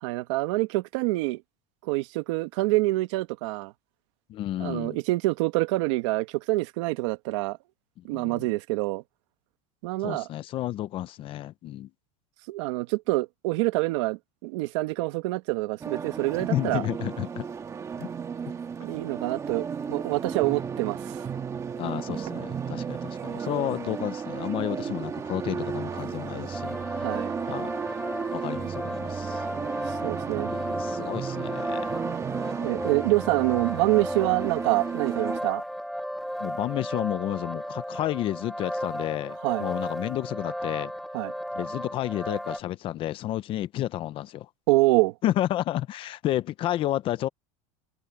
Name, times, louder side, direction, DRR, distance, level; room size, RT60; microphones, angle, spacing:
voice 1, 0.0-1.4 1.8-3.7 4.6-7.6 8.0-9.0 9.8-10.3 12.5-16.8 18.8-21.2 26.9-27.3 29.9-30.5 32.6-35.6 39.4-39.7 41.1-41.3 44.7-45.1, right 21 dB, 65° right, 1.6 m, -26 dB
voice 2, 4.3-5.0 8.0-8.5 10.0-11.9 16.5-17.5 18.0-18.1 21.8-26.8 27.4-27.7 28.3-29.4 30.5-32.0 36.4-40.9 41.5-44.5 45.2-47.3, left 13 dB, 35° left, 0.8 m, -31 dB
sound 1, 15.8-35.4, right 6 dB, 20° right, 1.8 m, -34 dB
sound 2, 26.5-42.6, equal, ahead, 0.6 m, -35 dB
supercardioid pair, 155°, 16 cm